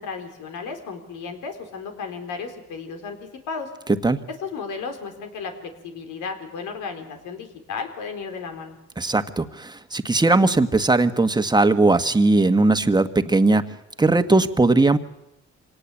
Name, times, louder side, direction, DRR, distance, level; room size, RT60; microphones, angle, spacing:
voice 1, 0.0-3.2 3.5-3.7 4.4-5.5 5.8-8.8, left 5 dB, 90° left, 5 dB, 4.2 m, -34 dB
voice 2, 9.0-13.6 14.0-15.0, right 2 dB, 15° right, 9 dB, 1.6 m, -19 dB
25.5 x 18.5 x 8.5 m, 0.86 s
cardioid pair, 90°, 30 cm